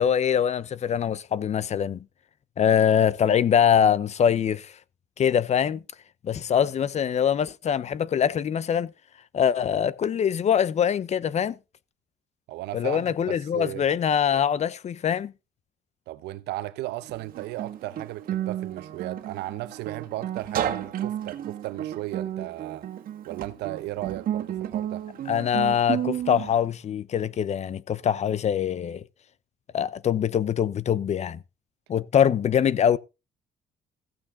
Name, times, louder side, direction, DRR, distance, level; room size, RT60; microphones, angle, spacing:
voice 1, 0.0-2.0 2.6-4.7 5.2-5.8 6.2-8.9 9.3-11.6 12.7-15.3 25.3-29.0 29.7-31.4 31.9-33.0, left 8 dB, 40° left, 0.7 m, -23 dB
voice 2, 12.5-13.9 16.1-22.9 23.2-25.0, right 16 dB, 85° right, 1.0 m, -35 dB
Guitar, 17.1-26.5, right 11 dB, 55° right, 1.8 m, -32 dB
15.0 x 8.6 x 3.8 m
cardioid pair, 110°, 17 cm